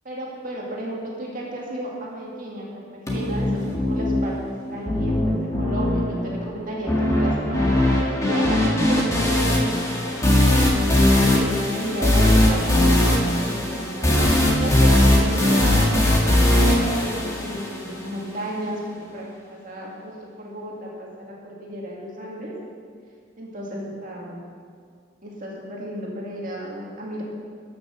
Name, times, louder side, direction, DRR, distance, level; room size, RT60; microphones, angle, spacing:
voice 1, 0.0-4.3 4.7-10.2 10.9-18.8 19.1-22.5 23.4-24.4 25.2-27.2, equal, 45° right, -3 dB, 2.3 m, -33 dB
sound 1, 3.1-18.1, left 1 dB, 15° left, 1.8 m, -20 dB
13.5 x 6.6 x 6.4 m, 2.1 s
head